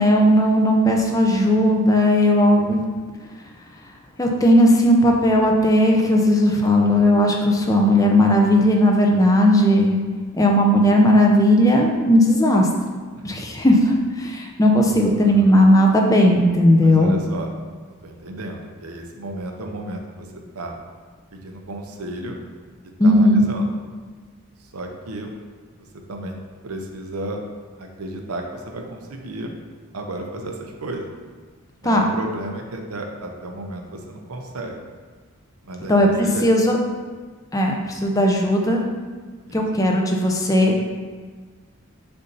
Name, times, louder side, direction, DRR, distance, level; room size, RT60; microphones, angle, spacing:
voice 1, 0.0-2.8 4.2-10.0 10.3-12.7 13.2-17.2 23.0-23.4 31.8-32.0 35.9-36.8 37.5-38.8 39.5-40.7, equal, 15° left, 0 dB, 0.6 m, -16 dB
voice 2, 15.2-15.6 16.8-17.5 18.0-20.8 21.3-22.4 22.8-23.7 24.6-25.3 25.9-26.4 26.6-27.4 27.8-29.5 29.9-31.1 31.8-34.8 35.6-36.0 36.2-36.5 39.5-39.6, right 1 dB, 90° right, 2 dB, 0.7 m, -33 dB
6.8 x 2.7 x 5.4 m, 1.5 s
head